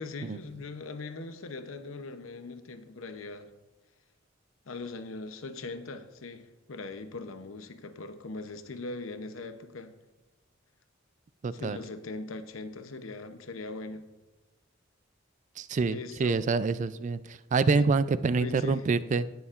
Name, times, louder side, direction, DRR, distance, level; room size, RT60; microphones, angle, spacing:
voice 1, 0.0-3.5 4.7-10.0 11.5-14.1 15.9-16.4 17.7-17.9 18.3-18.9, left 3 dB, 80° left, 0.8 m, -40 dB
voice 2, 11.4-11.8 15.6-19.3, right 4 dB, 35° right, 0.3 m, -26 dB
18.5 x 7.0 x 2.5 m
head